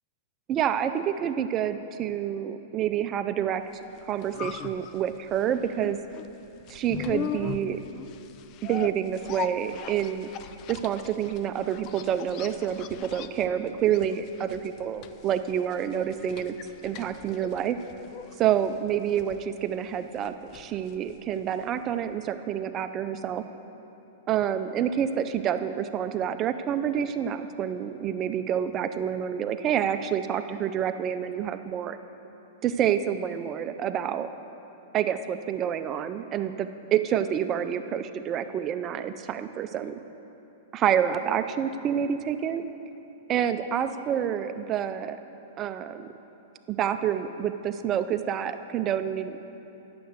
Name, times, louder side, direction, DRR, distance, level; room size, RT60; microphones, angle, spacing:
voice 1, 0.5-3.6 4.1-6.0 6.7-7.8 8.6-10.3 10.7-16.5 16.8-17.8 18.4-23.4 24.3-32.0 32.6-34.3 34.9-40.0 40.7-42.6 43.3-45.2 45.6-46.1 46.7-49.4, right 9 dB, 30° right, 9 dB, 0.5 m, -28 dB
sound 1, 3.8-21.8 22.1-22.2, left 8 dB, 40° left, 0.4 m, -40 dB
9.2 x 6.9 x 7.9 m, 3.0 s
hypercardioid pair, 125°, 0 cm